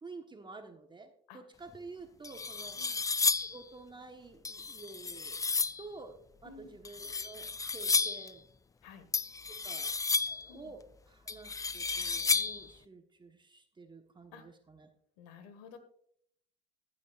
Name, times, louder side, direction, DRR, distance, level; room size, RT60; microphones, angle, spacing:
voice 1, 0.0-2.8 3.3-5.4 5.8-8.5 9.6-9.9 10.3-14.9, right 3 dB, 20° right, 6 dB, 1.2 m, -50 dB
sound 1, 1.7-1.8 2.2-3.6 4.4-5.8 6.8-8.3 9.1-10.5 11.3-12.7, left 4 dB, 15° left, 0.4 m, -32 dB
voice 2, 6.4-6.8 8.8-9.0 10.5-10.7 14.3-14.4 15.2-15.8, left 6 dB, 80° left, 10 dB, 1.6 m, -52 dB
14.5 x 8.5 x 2.4 m, 0.65 s
supercardioid pair, 80°, 21 cm